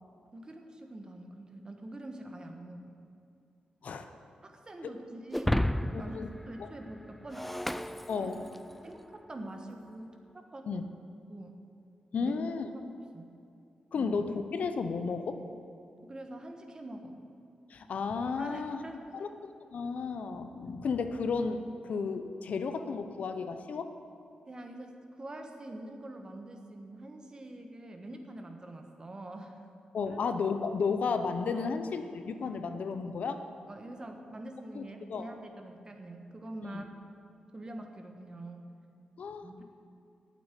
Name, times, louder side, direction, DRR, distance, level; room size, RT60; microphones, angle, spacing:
voice 1, 0.3-3.0 4.4-7.4 8.2-8.3 8.8-9.0 9.3-10.1 10.5-10.8 11.3-11.6 12.2-12.3 12.7-12.8 13.1-13.3 13.9-14.1 16.1-17.2 18.4-19.2 24.5-24.9 25.2-29.6 30.0-30.2 31.5-31.8 33.7-36.8 37.5-38.7 39.4-39.6, right 1 dB, 30° right, 4 dB, 1.3 m, -45 dB
Shatter, 5.3-8.8, left 1 dB, 5° left, 0.3 m, -33 dB
voice 2, 5.9-6.3 6.6-6.7 8.1-8.5 10.7-10.8 12.1-12.7 13.9-15.4 17.7-18.8 19.1-23.9 29.9-33.4 34.7-35.3 36.6-36.8 39.2-39.6, left 5 dB, 70° left, 8 dB, 0.7 m, -33 dB
8.4 x 8.2 x 9.1 m, 2.5 s
cardioid pair, 85°, 3 cm